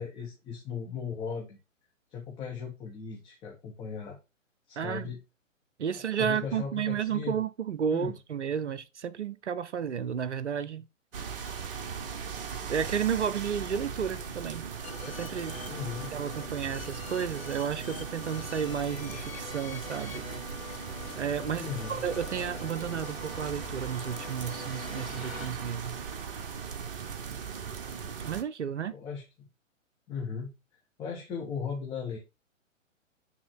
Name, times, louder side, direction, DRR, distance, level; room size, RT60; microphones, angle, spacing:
voice 1, 0.0-1.6 2.1-4.2 4.7-5.2 5.9-7.4 7.9-8.2 15.7-16.1 21.5-22.0 28.9-29.5 30.1-30.5 31.0-32.2, left 6 dB, 10° left, 1.0 m, -37 dB
voice 2, 4.8-5.1 5.8-10.9 12.7-14.7 15.1-15.6 16.1-20.2 21.1-26.0 28.2-28.9, right 8 dB, 60° right, 0.7 m, -32 dB
sound 1, 11.1-28.4, right 6 dB, 45° right, 1.0 m, -39 dB
sound 2, 14.8-25.5, left 4 dB, 50° left, 2.3 m, -44 dB
8.7 x 3.7 x 4.6 m
figure-of-eight pair, 125°, 40 cm